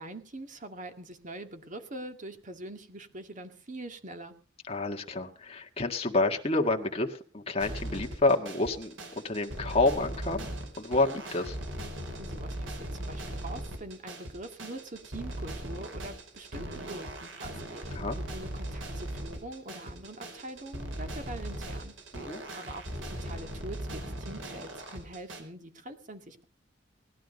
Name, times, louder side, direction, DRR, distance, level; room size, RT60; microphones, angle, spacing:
voice 1, 0.0-4.3 12.2-21.9 22.5-26.4, right 1 dB, 40° right, 7 dB, 2.1 m, -44 dB
voice 2, 4.7-8.9 9.2-10.5 10.8-11.6 17.9-18.2 22.1-22.4, left 2 dB, 30° left, 3 dB, 1.8 m, -28 dB
sound 1, 7.6-25.4, right 1 dB, 85° right, 4.3 m, -39 dB
19.5 x 11.5 x 5.3 m, 0.40 s
head